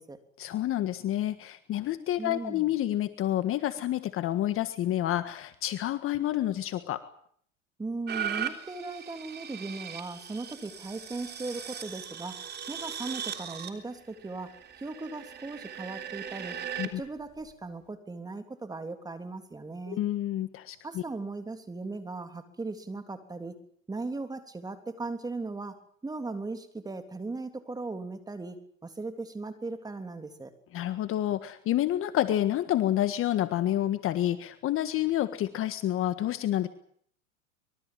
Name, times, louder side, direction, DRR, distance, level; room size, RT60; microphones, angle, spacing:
voice 1, 0.4-7.0 16.8-17.0 19.9-21.0 30.7-36.7, left 13 dB, 35° left, 11 dB, 1.6 m, -29 dB
voice 2, 2.2-2.7 7.8-12.4 12.7-16.6 17.0-20.0 20.8-23.6 23.9-30.5, right 3 dB, 10° right, 8 dB, 3.2 m, -38 dB
sound 1, 8.1-16.9 17.5-17.6, right 8 dB, 25° right, 3.5 m, -39 dB
25.0 x 22.5 x 7.6 m, 0.62 s
hypercardioid pair, 120°, 40 cm